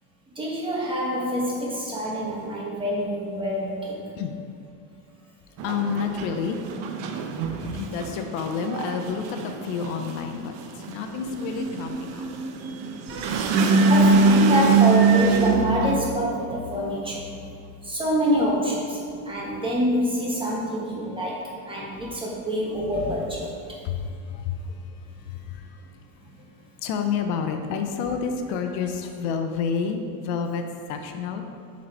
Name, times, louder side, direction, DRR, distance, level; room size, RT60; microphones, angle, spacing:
voice 1, 0.3-4.0 7.4-7.8 13.9-17.2 17.8-19.0 19.2-23.5, equal, 10° right, -5 dB, 1.4 m, -26 dB
voice 2, 5.6-6.6 7.7-12.3 19.5-19.6 23.6-25.9 26.8-30.6 30.9-31.4, left 6 dB, 80° left, 5 dB, 0.8 m, -29 dB
sound 1, 5.6-15.9, right 4 dB, 65° right, 0.8 m, -22 dB
sound 2, 11.3-18.0 18.3-19.9 20.9-21.2 21.5-21.8 23.4-23.7 24.0-24.2 25.8-25.9, left 1 dB, 30° right, 0.8 m, -37 dB
7.3 x 4.2 x 4.4 m, 2.4 s
cardioid pair, 135°, 41 cm